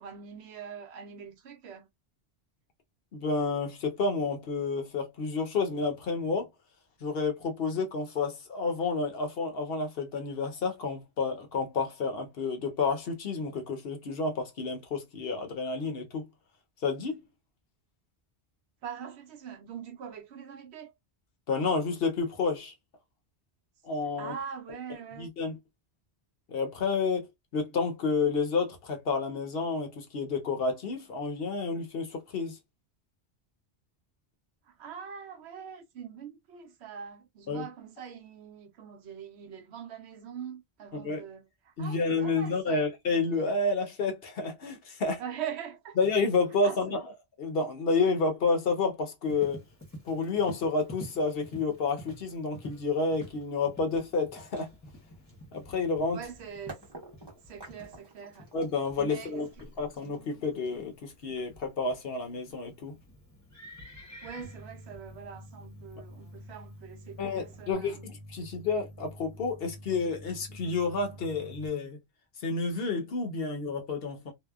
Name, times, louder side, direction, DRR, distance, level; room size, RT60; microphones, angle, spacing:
voice 1, 0.0-1.9 18.8-20.9 24.2-25.3 34.7-42.9 45.2-46.0 46.6-47.0 56.1-56.8 57.4-58.5 59.0-59.7 64.2-68.1 68.4-68.5, right 7 dB, 75° right, 0.9 m, -43 dB
voice 2, 3.1-6.5 7.0-16.3 16.8-17.2 21.5-22.7 23.8-24.3 25.2-25.5 26.5-27.3 27.5-32.6 37.5-37.6 40.9-41.2 41.8-45.2 46.0-47.0 47.4-49.6 50.0-54.7 55.5-56.2 58.5-59.5 59.8-63.0 67.2-72.0 72.4-74.3, left 4 dB, 65° left, 0.9 m, -30 dB
Livestock farm animals working animals, 49.3-67.7, equal, 15° left, 0.8 m, -50 dB
sound 1, 56.7-62.5, right 2 dB, 25° right, 0.9 m, -50 dB
sound 2, 64.4-71.7, right 1 dB, 80° left, 1.4 m, -48 dB
2.8 x 2.1 x 2.3 m
omnidirectional pair, 1.1 m